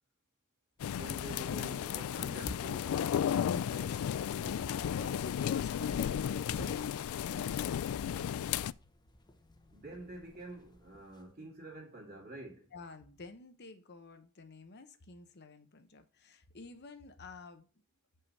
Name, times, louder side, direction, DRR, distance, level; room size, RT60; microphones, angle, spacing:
sound 1, 0.8-8.7, left 9 dB, 80° left, 0.3 m, -34 dB
sound 2, 0.8-11.3, equal, 20° left, 0.9 m, -54 dB
voice 1, 0.9-4.1 9.7-12.7, right 1 dB, 45° right, 2.5 m, -48 dB
voice 2, 4.4-6.8 7.3-7.6 12.7-17.7, left 3 dB, 50° left, 0.9 m, -49 dB
7.0 x 5.6 x 4.1 m
head